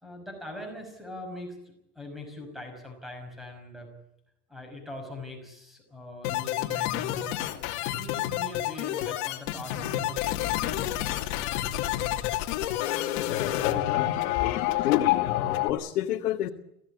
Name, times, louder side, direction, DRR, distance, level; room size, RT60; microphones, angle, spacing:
voice 1, 0.0-3.9 4.5-7.3 7.9-10.4 15.2-15.3, left 2 dB, ahead, 4 dB, 5.6 m, -41 dB
sound 1, 6.2-15.7, left 13 dB, 40° left, 2.8 m, -28 dB
voice 2, 13.2-16.5, left 13 dB, 65° left, 2 dB, 1.9 m, -31 dB
24.5 x 16.5 x 8.5 m, 0.80 s
supercardioid pair, 165°, 47 cm